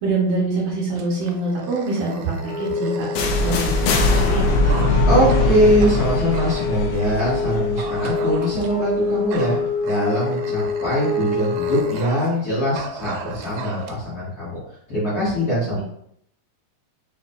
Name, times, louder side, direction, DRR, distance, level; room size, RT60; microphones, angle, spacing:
voice 1, 0.0-3.1 3.4-4.8, right 2 dB, 65° right, -5 dB, 2.6 m, -25 dB
Dog, 1.0-7.2 7.8-8.9 9.3-12.4 12.7-13.9, right 6 dB, 90° right, 2.1 m, -36 dB
Wind instrument woodwind instrument, 2.3-12.1, left 4 dB, 20° right, 1.2 m, -27 dB
sound 1, 3.2-9.0, left 2 dB, 80° left, 2.0 m, -21 dB
voice 2, 5.1-14.6 14.9-15.8, equal, 35° left, -10 dB, 1.9 m, -22 dB
5.3 x 3.9 x 2.3 m, 0.70 s
omnidirectional pair, 3.5 m